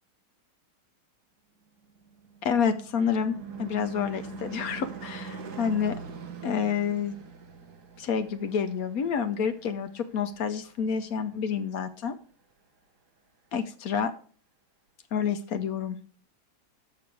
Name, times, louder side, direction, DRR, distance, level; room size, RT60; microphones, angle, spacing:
Car passing by / Truck / Engine, 2.0-10.7, right 4 dB, 55° right, 1.6 m, -42 dB
voice 1, 2.4-5.3 5.6-6.0 6.4-7.2 8.0-12.1 13.5-14.1 15.1-16.0, left 7 dB, 65° left, 9 dB, 0.9 m, -28 dB
6.9 x 6.8 x 6.1 m, 0.42 s
omnidirectional pair, 2.3 m